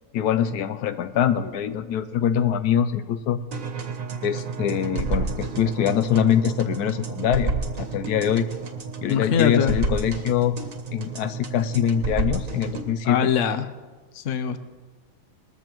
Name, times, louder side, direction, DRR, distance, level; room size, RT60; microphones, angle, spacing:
voice 1, 0.1-3.4 4.2-7.5 7.8-8.5 9.0-10.5 10.9-13.3, left 9 dB, 85° left, 11 dB, 1.2 m, -23 dB
sound 1, 3.5-12.9, right 3 dB, 60° right, 1.7 m, -30 dB
voice 2, 9.1-9.8 13.0-13.7 14.1-14.6, left 8 dB, 60° left, 10 dB, 1.1 m, -22 dB
20.5 x 14.0 x 3.0 m, 1.3 s
omnidirectional pair, 1.6 m